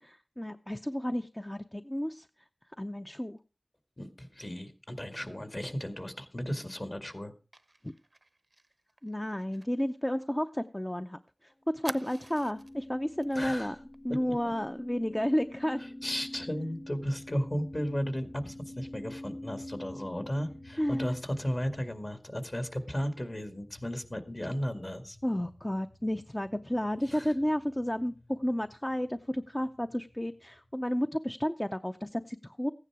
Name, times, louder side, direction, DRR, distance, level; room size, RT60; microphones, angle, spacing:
voice 1, 0.0-2.3 2.8-3.4 7.8-7.9 9.0-13.8 14.0-15.8 20.8-21.2 25.2-32.7, equal, 20° left, 8 dB, 0.6 m, -32 dB
voice 2, 4.0-7.3 13.4-13.7 16.0-25.2 27.1-27.3, equal, 45° left, 8 dB, 2.0 m, -35 dB
Fire, 7.5-11.0 11.2-11.3 11.8-12.8 13.2-13.4 13.7-14.0, right 2 dB, 50° right, 0.6 m, -47 dB
sound 1, 11.7-21.8, left 1 dB, 60° left, 1.0 m, -46 dB
sound 2, 15.7-31.1, left 2 dB, 75° left, 6.2 m, -59 dB
15.0 x 9.8 x 4.8 m, 0.32 s
wide cardioid pair, 50°, 0 cm